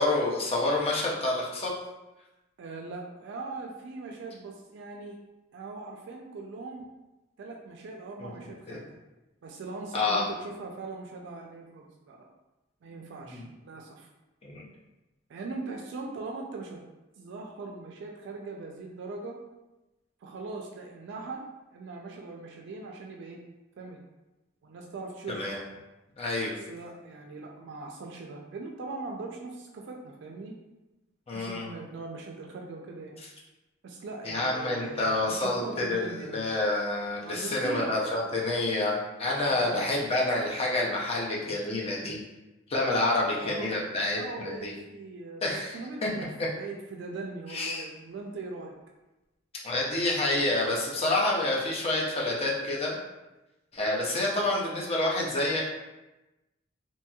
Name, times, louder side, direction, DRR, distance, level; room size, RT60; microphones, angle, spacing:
voice 1, 0.0-1.7 8.2-8.3 8.7-8.8 9.9-10.3 13.2-13.4 14.4-14.7 25.3-25.6 26.2-26.6 31.3-31.7 34.2-42.2 42.7-44.7 45.4-46.1 47.5-47.8 49.6-53.0 53.7-55.6, left 2 dB, 30° left, -3 dB, 0.6 m, -28 dB
voice 2, 2.6-5.2 5.5-6.8 7.4-9.0 9.4-12.3 12.8-14.1 15.3-16.8 17.2-19.4 20.2-23.4 23.8-24.0 24.6-25.4 26.6-30.5 31.3-33.2 33.8-36.4 37.2-37.9 39.5-40.1 43.3-43.8 44.1-46.3 46.6-48.7, right 3 dB, 60° right, 1 dB, 0.3 m, -40 dB
2.8 x 2.8 x 2.3 m, 1.0 s
head